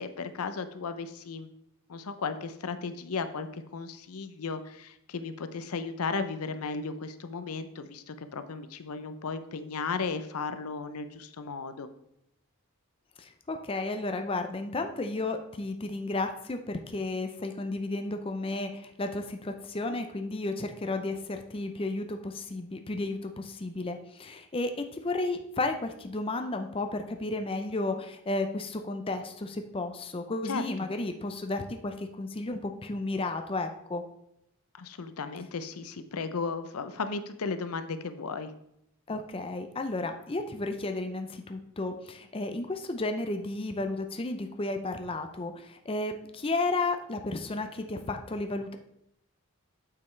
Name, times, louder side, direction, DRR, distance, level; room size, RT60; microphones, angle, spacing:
voice 1, 0.0-1.5 1.9-11.9 30.4-30.7 34.7-38.5, left 4 dB, 85° left, 10 dB, 0.6 m, -35 dB
voice 2, 13.2-34.0 39.1-48.8, left 2 dB, 25° left, 6 dB, 0.5 m, -33 dB
8.5 x 6.8 x 3.2 m, 0.78 s
head